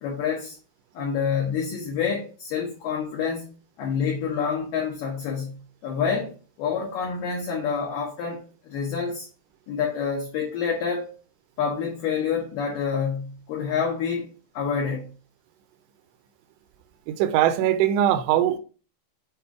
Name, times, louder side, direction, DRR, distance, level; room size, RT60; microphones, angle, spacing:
voice 1, 0.0-0.6 0.9-3.5 3.8-9.3 9.7-11.1 11.6-14.3 14.5-15.0, left 6 dB, 75° left, 2.0 m, -27 dB
voice 2, 17.1-18.6, right 11 dB, 80° right, 2.5 m, -21 dB
7.7 x 2.6 x 4.7 m
omnidirectional pair, 5.3 m